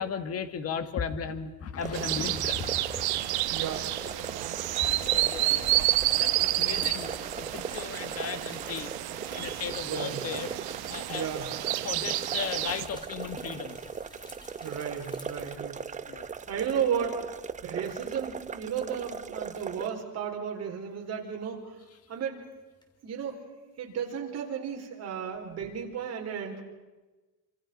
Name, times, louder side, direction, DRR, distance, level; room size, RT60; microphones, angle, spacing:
voice 1, 0.0-2.9 3.1-3.3 3.6-3.8 4.0-4.2 4.8-5.6 6.2-8.9 9.3-10.5 10.9-11.2 11.8-13.8 16.1-16.3, left 6 dB, 40° left, 10 dB, 1.6 m, -36 dB
sound 1, 1.8-19.9, right 6 dB, 20° right, 0.8 m, -39 dB
sound 2, 1.9-12.9, right 16 dB, 75° right, 1.2 m, -30 dB
voice 2, 3.5-3.9 4.2-4.4 9.9-10.2 11.1-11.5 14.6-15.8 16.1-17.2 17.6-21.8 22.1-22.4 23.0-23.4 23.8-26.6, right 8 dB, 40° right, 1 dB, 4.4 m, -34 dB
sound 3, 4.5-16.4 17.9-18.0 22.8-22.9, left 1 dB, 10° left, 3.0 m, -49 dB
27.5 x 26.0 x 5.3 m, 1.2 s
cardioid pair, 160°, 38 cm